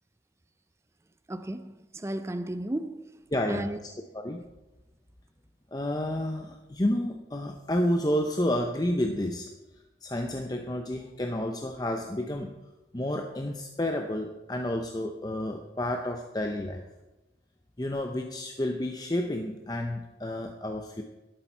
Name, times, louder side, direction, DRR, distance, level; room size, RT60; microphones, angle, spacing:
voice 1, 1.3-3.1 3.5-3.8, right 1 dB, 15° right, 0.4 m, -34 dB
voice 2, 3.3-3.7 4.1-4.4 5.7-9.5 10.0-12.5 12.9-16.8 17.8-21.0, left 1 dB, 20° left, 0.7 m, -30 dB
12.5 x 12.0 x 4.5 m
head